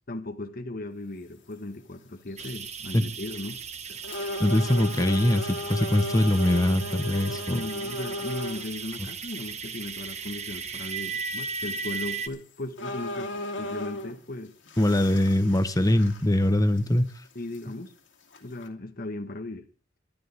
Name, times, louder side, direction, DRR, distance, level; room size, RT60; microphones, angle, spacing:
voice 1, 0.1-3.6 3.9-4.0 7.5-14.5 17.3-17.9 18.4-19.7, left 2 dB, 45° left, 1.4 m, -37 dB
sound 1, 1.7-1.8 2.3-2.7 3.3-3.4 4.0-8.7 9.3-9.4 11.8-11.9 12.3-12.4 12.8-14.2 14.7-16.5 16.8-16.9 17.5-17.6 18.3-18.7, left 1 dB, 70° left, 2.6 m, -35 dB
sound 2, 2.4-12.3, right 5 dB, 35° right, 1.2 m, -37 dB
voice 2, 4.4-7.6 14.8-17.1, left 1 dB, 20° left, 1.0 m, -22 dB
22.0 x 12.5 x 3.4 m
head